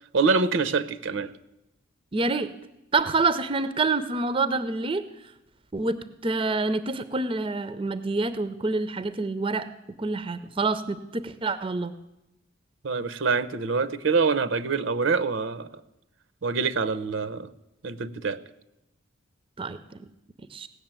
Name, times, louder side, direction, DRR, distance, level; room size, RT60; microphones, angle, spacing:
voice 1, 0.1-1.3 12.8-15.7 16.4-17.5 17.8-18.4, right 4 dB, 75° right, 14 dB, 0.7 m, -25 dB
voice 2, 2.1-2.5 2.9-5.0 5.7-6.0 6.2-9.7 10.0-11.9 19.6-20.0 20.5-20.7, right 3 dB, 25° right, 13 dB, 0.5 m, -27 dB
16.5 x 6.6 x 8.9 m, 0.92 s
head